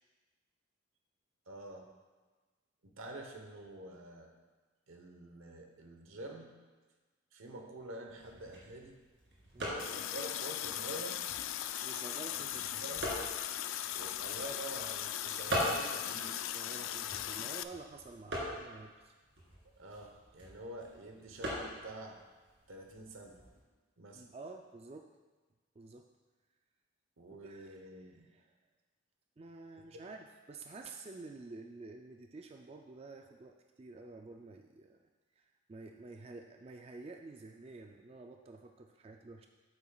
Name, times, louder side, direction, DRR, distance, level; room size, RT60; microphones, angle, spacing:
voice 1, 1.5-1.9 2.8-4.3 4.9-6.5 7.3-9.0 9.7-11.2 12.8-13.2 13.9-16.4 19.6-22.2 22.7-23.4 24.0-24.2 27.2-28.2 29.9-30.0, right 1 dB, 85° right, 3 dB, 1.0 m, -47 dB
sound 1, 8.1-23.6, equal, 65° right, 2.2 m, -43 dB
Water tap faucet, 9.8-17.6, left 11 dB, 80° left, 0.3 m, -38 dB
voice 2, 11.8-12.8 16.4-19.1 24.1-25.1 25.8-26.0 27.3-28.4 29.4-35.0 35.4-39.5, right 3 dB, 30° right, 3 dB, 0.3 m, -50 dB
8.7 x 8.2 x 2.3 m, 1.3 s
head